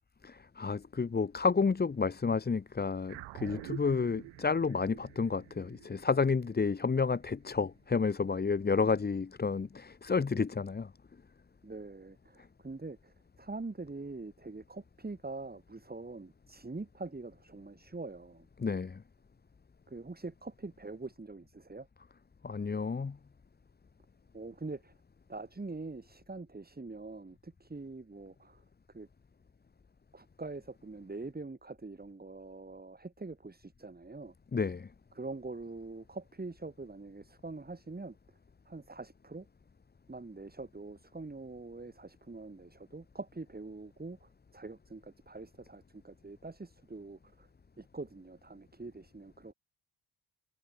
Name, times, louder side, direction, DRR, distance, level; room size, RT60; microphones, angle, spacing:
voice 1, 0.2-10.9 18.6-19.0 22.4-23.2 34.5-34.9, left 5 dB, 25° left, 1.0 m, -30 dB
sound 1, 3.1-7.7, right 21 dB, 90° right, 1.4 m, -48 dB
voice 2, 11.6-18.5 19.9-21.9 24.3-24.9 25.3-28.6 28.9-29.1 30.1-34.3 35.2-38.2 38.7-39.5 40.1-47.5 47.8-49.5, right 3 dB, 20° right, 5.7 m, -44 dB
supercardioid pair, 65°, 42 cm